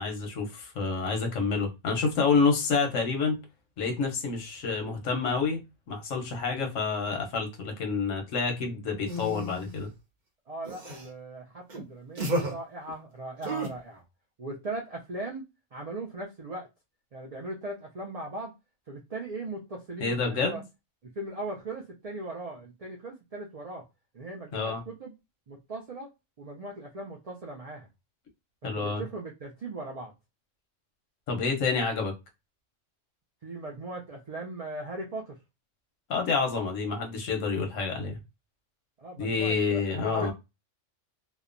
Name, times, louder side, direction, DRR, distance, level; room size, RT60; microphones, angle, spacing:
voice 1, 0.0-3.4 3.8-9.9 20.0-20.6 24.5-24.8 28.6-29.0 31.3-32.1 36.1-38.2 39.2-40.3, left 4 dB, 85° left, 1.1 m, -28 dB
sound 1, 9.1-9.7 10.6-11.1 11.7-11.8 12.2-12.5 13.4-13.7, right 1 dB, 45° right, 0.8 m, -32 dB
voice 2, 10.5-14.0 14.4-15.5 15.7-16.7 17.1-18.5 18.9-20.6 21.0-23.8 24.1-25.1 25.5-26.1 26.4-27.9 28.6-30.1 33.4-35.4 39.0-40.3, right 2 dB, 80° right, 0.3 m, -38 dB
2.8 x 2.1 x 2.4 m
omnidirectional pair, 1.3 m